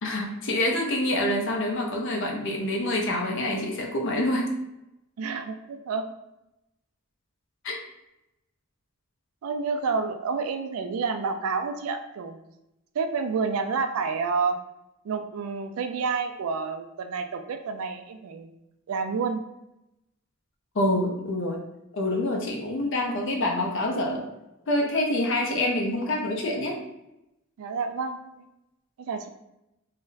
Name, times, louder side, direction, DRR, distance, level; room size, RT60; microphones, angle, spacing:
voice 1, 0.0-4.5 7.6-7.8 20.7-21.6 21.9-24.2 24.7-26.8, left 1 dB, 60° left, 0 dB, 0.6 m, -26 dB
voice 2, 5.2-6.1 9.4-12.4 12.9-14.6 15.0-18.5 18.9-19.4 27.6-28.5 29.1-29.3, right 5 dB, 85° right, 8 dB, 0.3 m, -29 dB
2.4 x 2.1 x 3.9 m, 0.90 s
head